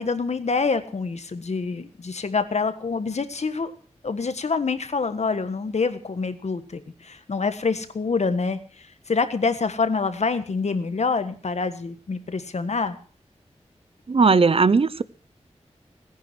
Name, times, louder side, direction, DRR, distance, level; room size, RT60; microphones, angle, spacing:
voice 1, 0.0-3.7 4.0-13.0, left 4 dB, 75° left, 10 dB, 1.5 m, -26 dB
voice 2, 14.1-15.0, right 4 dB, 55° right, 18 dB, 0.6 m, -18 dB
18.0 x 10.0 x 6.1 m, 0.42 s
wide cardioid pair, 95°, 12 cm